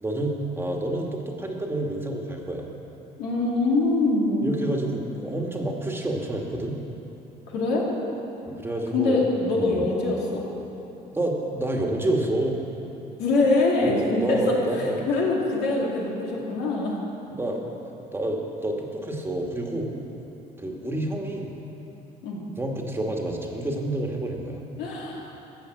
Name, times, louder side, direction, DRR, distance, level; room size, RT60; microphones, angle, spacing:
voice 1, 0.0-2.7 4.4-6.8 8.5-9.2 9.5-9.8 11.1-12.6 13.8-15.1 17.3-17.7 18.1-19.9 20.6-21.5 22.6-24.6, right 1 dB, 15° right, 1 dB, 1.6 m, -28 dB
voice 2, 3.2-4.5 7.5-7.9 8.9-10.5 13.2-14.6 15.1-16.9 22.2-22.4 24.8-25.3, left 2 dB, 85° left, -3 dB, 2.6 m, -23 dB
14.0 x 7.0 x 7.8 m, 2.9 s
cardioid pair, 110°, 17 cm